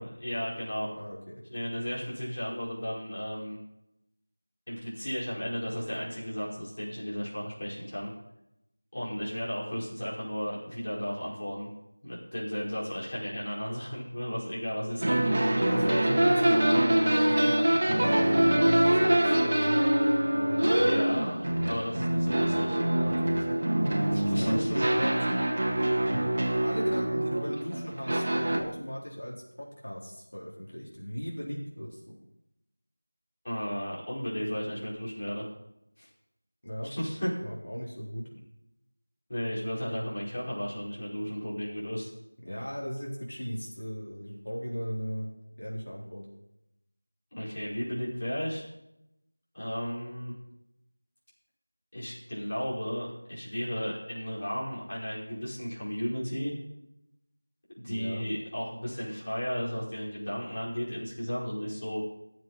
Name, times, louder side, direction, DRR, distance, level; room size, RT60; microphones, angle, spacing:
voice 1, 0.0-0.9 1.5-3.6 4.7-8.1 8.9-11.7 12.0-15.4 20.8-21.4 21.7-22.8 24.1-24.9 33.4-35.5 36.0-36.1 36.9-37.3 39.3-42.1 47.3-48.6 49.5-50.3 51.9-56.5 57.8-62.0, equal, 40° left, -6 dB, 5.0 m, -34 dB
voice 2, 0.9-1.4 15.6-21.0 21.9-22.0 23.0-25.2 26.6-32.2 36.6-36.9 37.4-38.3 42.4-45.3 45.6-46.3 57.9-58.2, equal, 75° left, -4 dB, 4.1 m, -38 dB
sound 1, 15.0-28.6, right 1 dB, 40° right, 1.8 m, -25 dB
22.5 x 7.7 x 4.2 m, 0.84 s
figure-of-eight pair, 175°, 0 cm